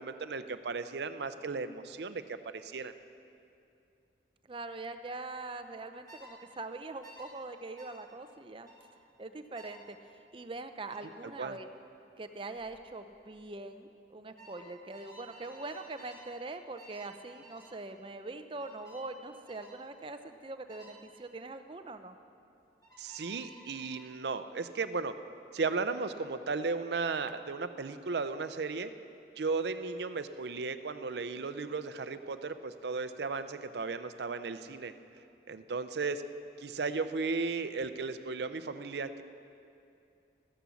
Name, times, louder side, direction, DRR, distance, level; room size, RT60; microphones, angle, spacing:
voice 1, 0.0-2.9 11.4-11.6 23.0-25.1 25.5-28.9 29.4-34.9 35.5-36.2 36.6-39.2, right 4 dB, 70° right, 11 dB, 0.6 m, -35 dB
voice 2, 4.5-8.7 9.2-10.0 10.3-11.7 12.2-22.2, right 2 dB, 30° right, 9 dB, 0.6 m, -43 dB
sound 1, 6.1-6.3 7.0-7.3 7.8-8.0 8.7-8.8 9.6-9.8 10.9-11.1 12.6-12.8 13.1-13.5 14.4-16.3 16.8-17.1 17.4-17.7 18.6-19.1 19.5-19.8 20.7-21.0 22.8-24.1, equal, 20° left, 4.0 m, -54 dB
14.0 x 10.0 x 7.1 m, 2.6 s
head